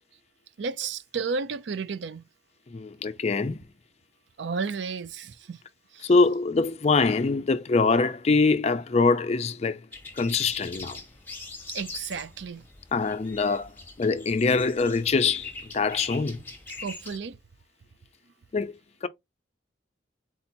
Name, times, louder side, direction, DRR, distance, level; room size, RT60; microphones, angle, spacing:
voice 1, 0.6-2.2 4.4-5.6 5.9-6.1 11.7-12.6 16.8-17.4, right 5 dB, 70° right, 0.5 m, -32 dB
voice 2, 2.7-3.6 6.0-9.8 10.2-11.0 12.9-13.7 14.0-16.4 18.5-18.7 19.0-19.1, left 4 dB, 35° left, 0.4 m, -24 dB
sound 1, 9.9-17.2, left 3 dB, 10° left, 1.1 m, -43 dB
4.1 x 2.8 x 4.2 m
head